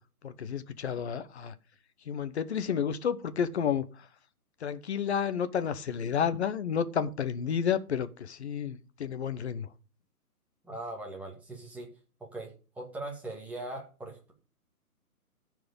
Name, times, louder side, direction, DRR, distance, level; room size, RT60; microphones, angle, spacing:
voice 1, 0.2-1.5 2.0-4.1 4.6-9.7, left 7 dB, 45° left, 1.0 m, -31 dB
voice 2, 10.6-11.9 12.2-14.3, right 2 dB, 5° right, 1.6 m, -40 dB
14.0 x 4.8 x 5.3 m
hypercardioid pair, 150°, 45 cm